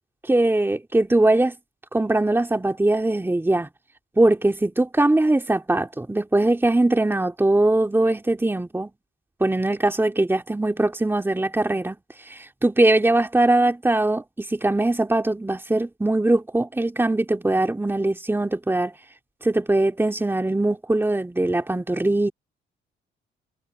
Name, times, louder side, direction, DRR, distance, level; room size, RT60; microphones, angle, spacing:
voice 1, 0.3-1.5 1.9-3.7 4.2-8.9 9.4-12.0 12.3-18.9 19.4-22.3, right 2 dB, 10° right, 2.8 m, -21 dB
cardioid pair, 90°, 20 cm